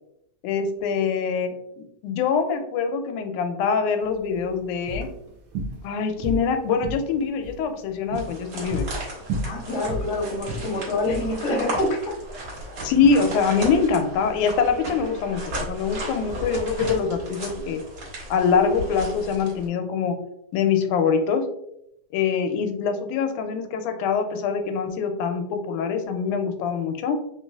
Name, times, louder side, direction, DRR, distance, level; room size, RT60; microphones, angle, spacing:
voice 1, 0.4-5.1 5.8-8.9 12.8-17.8 18.3-20.2 20.5-21.5 22.1-27.2, left 6 dB, 90° left, 6 dB, 2.0 m, -24 dB
sound 1, 4.0-19.7, right 1 dB, 70° right, 1.3 m, -36 dB
sound 2, 8.1-19.7, right 1 dB, 50° right, 1.6 m, -35 dB
voice 2, 9.4-12.1, left 1 dB, 55° left, -3 dB, 1.1 m, -26 dB
4.4 x 3.1 x 2.3 m, 0.78 s
omnidirectional pair, 3.4 m